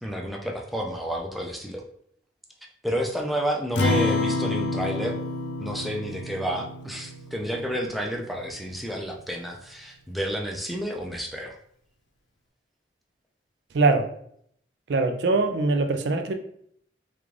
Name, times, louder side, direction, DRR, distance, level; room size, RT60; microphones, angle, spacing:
voice 1, 0.0-1.8 2.8-5.2 5.6-11.6, equal, ahead, 0 dB, 0.4 m, -30 dB
Acoustic guitar, 3.8-8.4, left 2 dB, 85° left, 0.6 m, -28 dB
voice 2, 14.9-16.4, right 3 dB, 75° right, 6 dB, 0.4 m, -22 dB
3.6 x 2.4 x 3.1 m, 0.67 s
head